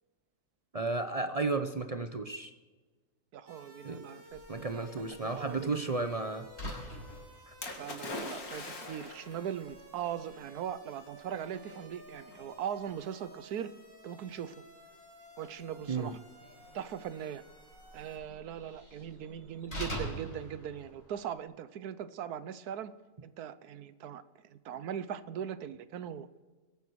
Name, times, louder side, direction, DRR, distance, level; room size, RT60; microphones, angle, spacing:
voice 1, 0.7-2.5 3.8-4.0 4.5-6.8 7.5-7.6 15.9-16.1, right 3 dB, 40° right, 8 dB, 0.5 m, -33 dB
voice 2, 3.3-6.0 7.8-13.7 14.0-14.6 15.4-16.2 16.7-17.4 17.9-22.9 23.2-26.3, right 9 dB, 90° right, 14 dB, 1.3 m, -40 dB
sound 1, 3.5-18.2, equal, 15° right, 2.3 m, -55 dB
Slam, 4.3-21.4, equal, 45° left, 5.7 m, -48 dB
Splash splatter, 7.6-9.4 10.3-10.4, left 2 dB, 70° left, 2.5 m, -41 dB
23.0 x 9.3 x 4.7 m, 1.3 s
omnidirectional pair, 1.6 m